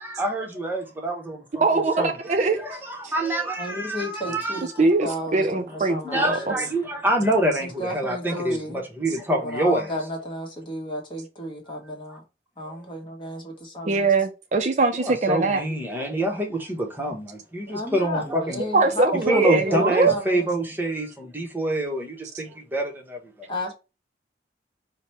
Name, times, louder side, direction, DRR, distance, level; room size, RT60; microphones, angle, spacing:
voice 1, 0.0-1.6 2.0-2.1 2.6-4.7 6.0-8.6 9.0-9.9 14.9-18.7 19.3-23.5, right 1 dB, 10° right, 0.9 m, -26 dB
voice 2, 1.6-2.6 3.0-3.1 4.8-6.5 13.8-15.6 18.7-20.1, right 3 dB, 40° right, 0.4 m, -21 dB
voice 3, 3.6-6.7 7.6-8.8 9.4-12.2 12.6-14.1 17.7-20.7 23.5-23.7, equal, 25° left, 1.1 m, -33 dB
4.8 x 2.1 x 4.3 m
head